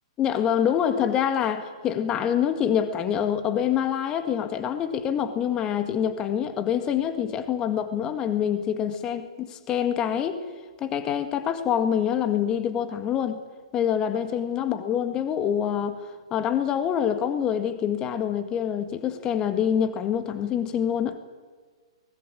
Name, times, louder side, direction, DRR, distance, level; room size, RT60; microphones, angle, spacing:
voice 1, 0.2-10.4 10.8-13.4 13.7-21.2, left 9 dB, 25° left, 10 dB, 1.9 m, -26 dB
23.5 x 20.0 x 9.0 m, 1.5 s
figure-of-eight pair, 115°, 3 cm